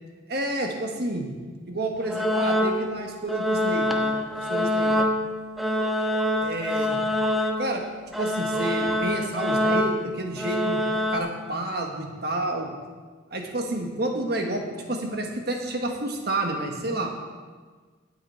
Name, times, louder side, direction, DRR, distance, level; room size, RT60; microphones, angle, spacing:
voice 1, 0.3-1.3 1.7-5.0 6.4-7.0 7.6-7.8 8.2-10.8 11.1-12.7 13.3-17.1, right 2 dB, 55° right, 2 dB, 1.4 m, -30 dB
sound 1, 2.0-3.0 3.3-7.8 8.1-11.2, left 1 dB, ahead, 0.6 m, -25 dB
17.5 x 6.0 x 4.4 m, 1.5 s
head